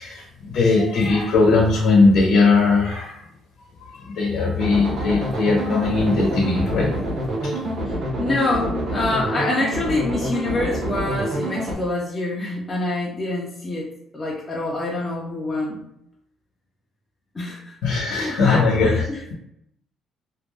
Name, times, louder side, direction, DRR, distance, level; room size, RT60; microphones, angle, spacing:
voice 1, 0.0-3.2 3.9-6.9 7.4-7.5 17.8-19.1, left 3 dB, 85° left, -3 dB, 0.7 m, -19 dB
sound 1, 4.6-11.7, right 1 dB, 50° right, 0.7 m, -27 dB
voice 2, 7.8-15.8 17.3-17.8 18.1-19.2, left 2 dB, 20° left, -4 dB, 0.5 m, -26 dB
2.4 x 2.1 x 3.3 m, 0.77 s
cardioid pair, 135°, 0 cm